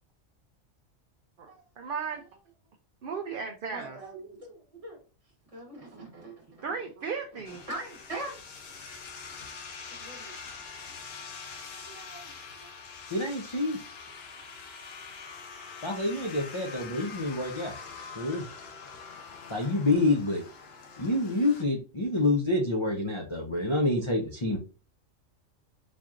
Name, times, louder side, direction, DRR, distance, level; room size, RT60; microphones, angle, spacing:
voice 1, 1.4-2.2 3.0-4.0 6.6-7.6, right 5 dB, 60° right, 4 dB, 0.5 m, -35 dB
voice 2, 3.7-5.0 5.5-6.6 7.7-8.4 9.9-10.3 11.7-12.7, right 2 dB, 30° right, 0 dB, 1.1 m, -42 dB
sound 1, 7.4-21.6, left 5 dB, 60° left, 0.8 m, -44 dB
voice 3, 13.1-13.8 15.8-17.8 18.2-18.4 19.5-20.4 21.0-24.6, left 2 dB, 35° left, 1 dB, 0.4 m, -27 dB
4.1 x 2.9 x 2.4 m, 0.33 s
omnidirectional pair, 1.4 m